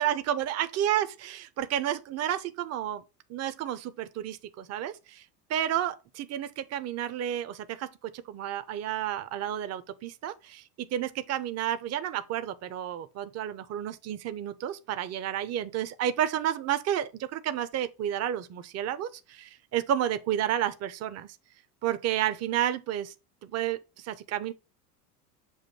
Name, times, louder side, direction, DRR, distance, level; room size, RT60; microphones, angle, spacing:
voice 1, 0.0-3.0 3.3-5.2 5.5-21.4 21.8-23.1 23.4-24.5, right 11 dB, 35° right, 0.8 m, -31 dB
7.3 x 2.6 x 5.5 m
hypercardioid pair, 85°, 47 cm